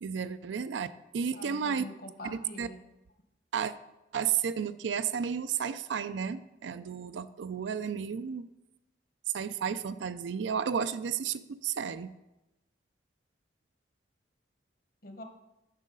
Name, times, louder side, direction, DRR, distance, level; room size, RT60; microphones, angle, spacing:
voice 1, 0.0-1.9 2.3-2.7 3.5-3.7 4.1-8.5 9.3-12.1, right 7 dB, 85° right, 14 dB, 0.4 m, -32 dB
voice 2, 1.3-2.8 15.0-15.2, left 1 dB, 50° left, 5 dB, 1.0 m, -44 dB
9.6 x 6.2 x 3.8 m, 0.95 s
head